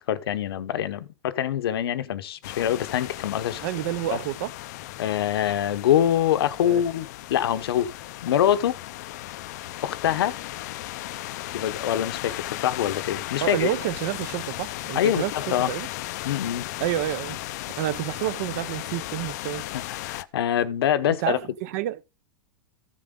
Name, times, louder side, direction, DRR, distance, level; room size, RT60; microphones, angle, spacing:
voice 1, 0.0-3.7 4.1-4.2 5.0-8.8 9.8-10.4 11.5-13.7 14.9-15.7 16.2-16.7 19.7-21.4, left 10 dB, 75° left, 1.0 m, -25 dB
sound 1, 2.4-20.2, left 16 dB, 45° left, 0.5 m, -36 dB
voice 2, 3.6-4.5 6.6-6.8 13.4-15.9 16.8-17.4 17.8-19.7 21.1-22.0, right 14 dB, 40° right, 0.6 m, -29 dB
14.5 x 7.5 x 3.8 m
supercardioid pair, 170°, 13 cm